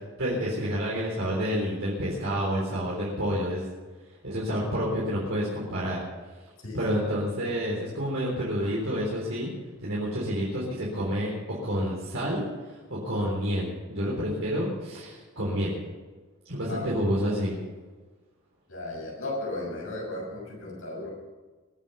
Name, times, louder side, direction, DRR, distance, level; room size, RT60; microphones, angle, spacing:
voice 1, 0.2-3.6 4.2-6.0 6.7-9.5 9.8-11.3 11.6-15.8 16.5-17.6, equal, 65° right, -5 dB, 3.9 m, -29 dB
voice 2, 6.6-7.0 16.7-16.9 18.7-21.1, left 2 dB, 70° left, -2 dB, 6.7 m, -35 dB
21.5 x 8.2 x 6.8 m, 1.3 s
head